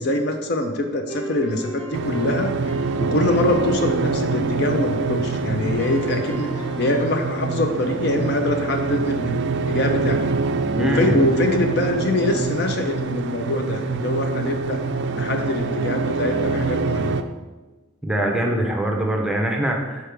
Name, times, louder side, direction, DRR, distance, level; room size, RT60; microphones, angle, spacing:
voice 1, 0.0-2.5 3.0-9.3 9.7-10.2 10.8-14.8 15.2-17.2, left 1 dB, 50° left, 4 dB, 0.5 m, -24 dB
sound 1, 1.1-4.1 5.8-7.2, right 2 dB, 25° left, 1.0 m, -35 dB
sound 2, 1.9-17.2, right 4 dB, 55° right, 0.3 m, -25 dB
voice 2, 10.7-11.2 18.0-20.1, right 1 dB, 5° right, 0 dB, 0.6 m, -23 dB
6.2 x 4.7 x 3.4 m, 1.2 s
head